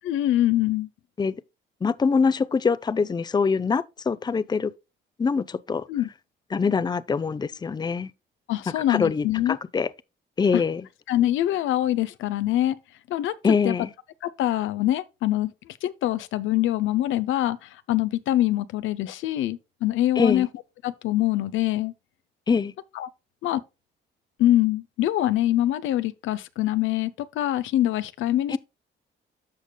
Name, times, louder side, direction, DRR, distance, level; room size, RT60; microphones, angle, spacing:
voice 1, 0.0-0.9 5.9-6.1 8.5-9.6 10.5-10.6 11.1-12.8 13.1-13.3 13.6-13.8 14.2-20.5 20.8-21.9 22.9-23.1 23.4-23.6 24.4-28.6, left 13 dB, 85° left, 0.6 m, -24 dB
voice 2, 1.8-4.7 5.2-5.8 6.5-8.1 8.9-9.9 10.4-10.8 13.4-13.9 20.2-20.5 22.5-22.7 28.5-28.6, left 5 dB, 20° left, 0.5 m, -24 dB
13.0 x 5.1 x 2.2 m
cardioid pair, 90°, 20 cm